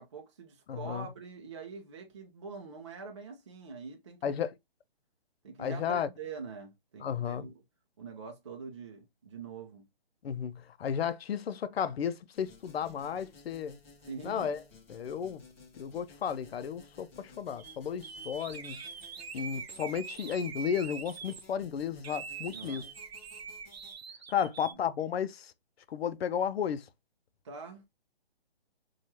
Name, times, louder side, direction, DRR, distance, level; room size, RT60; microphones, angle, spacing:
voice 1, 0.0-4.4 5.4-7.5 8.0-9.9 14.0-14.5 22.5-22.9 24.4-24.8 27.4-27.9, right 5 dB, 30° right, 0.5 m, -44 dB
voice 2, 0.7-1.1 4.2-4.5 5.6-6.1 7.0-7.5 10.2-13.8 14.2-14.6 14.9-15.4 15.8-18.8 19.3-22.8 24.3-25.5 25.9-26.8, left 8 dB, 80° left, 0.5 m, -33 dB
sound 1, 12.3-23.9, left 3 dB, 15° left, 0.6 m, -57 dB
sound 2, 17.6-17.8 18.0-21.4 22.0-24.7, right 6 dB, 85° right, 0.8 m, -44 dB
4.4 x 2.4 x 2.7 m
hypercardioid pair, 170°, 30 cm